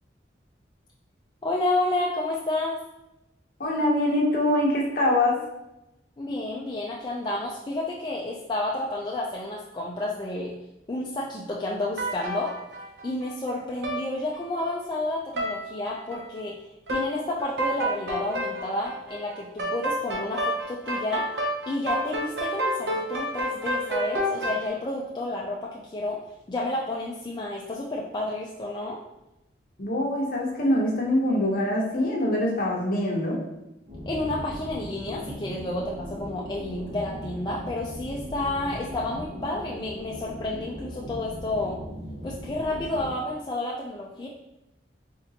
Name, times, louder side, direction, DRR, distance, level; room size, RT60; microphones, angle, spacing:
voice 1, 1.4-2.8 6.2-10.6 10.9-12.5 13.0-21.3 21.7-26.2 26.5-29.0 34.1-41.8 42.2-44.3, left 2 dB, 25° left, -4 dB, 0.4 m, -30 dB
voice 2, 3.6-5.4 29.8-33.4, left 1 dB, 50° left, -2 dB, 0.9 m, -24 dB
sound 1, 12.0-13.5 13.8-14.0 14.3-14.9 15.3-15.5 15.9-16.4 16.9-17.1 17.4-24.7, equal, 65° right, 0.8 m, -30 dB
sound 2, 33.9-43.1, equal, 40° right, 1.0 m, -38 dB
3.8 x 3.5 x 2.8 m, 0.91 s
head